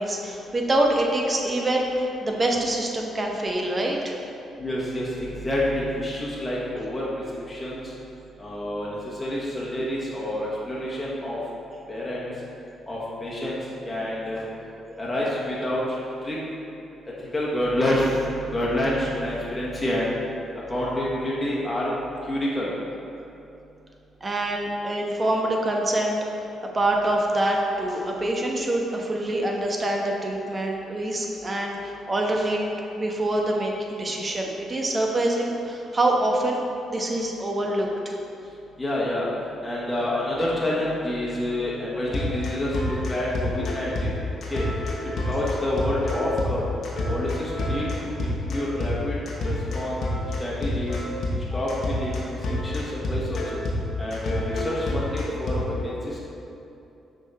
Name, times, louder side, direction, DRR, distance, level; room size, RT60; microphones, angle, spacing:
voice 1, 0.0-4.2 14.8-15.0 24.2-32.6 32.9-36.6 36.9-38.2, right 1 dB, 35° right, 0 dB, 1.0 m, -25 dB
voice 2, 4.6-7.1 7.5-7.9 8.4-11.4 11.9-12.3 12.9-13.6 13.8-14.4 15.0-16.4 17.2-20.1 20.7-21.9 22.2-22.7 38.8-39.3 39.6-44.1 44.5-44.6 45.0-46.6 47.1-50.0 50.4-51.0 51.5-52.2 52.5-53.6 54.0-56.2, left 1 dB, 20° left, -7 dB, 1.5 m, -28 dB
sound 1, 42.1-55.6, left 1 dB, 60° left, 1.1 m, -28 dB
6.3 x 3.8 x 4.3 m, 2.8 s
hypercardioid pair, 45°, 0 cm